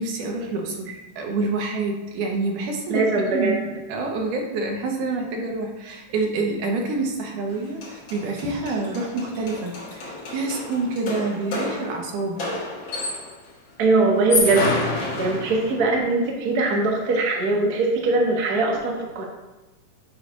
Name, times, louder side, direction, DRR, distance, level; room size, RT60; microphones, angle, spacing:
voice 1, 0.0-3.1 3.3-12.4, right 3 dB, 80° right, 1 dB, 2.5 m, -27 dB
voice 2, 2.9-3.5 13.8-19.2, right 3 dB, 60° right, -2 dB, 1.0 m, -21 dB
sound 1, 7.5-7.6 7.8-13.4 14.1-15.9, left 2 dB, 50° left, 1.8 m, -29 dB
8.2 x 3.2 x 5.1 m, 1.1 s
omnidirectional pair, 3.6 m